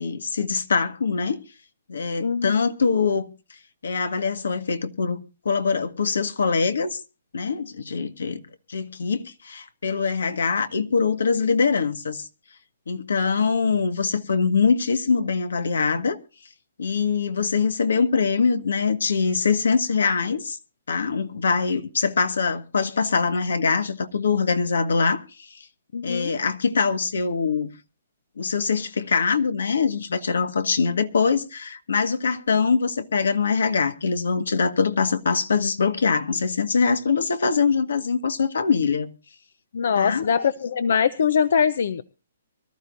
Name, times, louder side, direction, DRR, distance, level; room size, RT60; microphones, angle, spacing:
voice 1, 0.0-1.4 1.9-3.3 3.8-5.2 5.4-7.0 7.3-8.4 8.7-12.3 12.9-16.2 16.8-20.6 20.9-25.7 26.0-27.7 28.4-39.1 39.9-40.4, left 5 dB, 85° left, 1.6 m, -23 dB
voice 2, 2.2-2.5 25.9-26.3 39.7-42.0, left 7 dB, 65° left, 0.7 m, -22 dB
24.0 x 13.0 x 2.6 m
hypercardioid pair, 150°, 0 cm